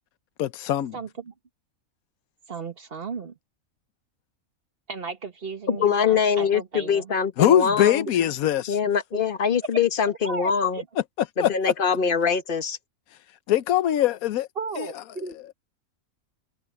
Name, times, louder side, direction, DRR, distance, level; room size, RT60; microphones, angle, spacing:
voice 1, 0.4-0.9 7.4-8.8 11.4-11.5 13.5-14.5 14.8-14.9, left 12 dB, 80° left, 1.2 m, -21 dB
voice 2, 0.9-1.3 2.5-3.3 4.9-7.1 9.1-9.2 10.2-10.8 14.6-15.4, right 5 dB, 45° right, 1.5 m, -35 dB
voice 3, 5.7-8.0 8.7-10.8 11.4-12.8, left 6 dB, 40° left, 1.4 m, -23 dB
omnidirectional pair, 1.5 m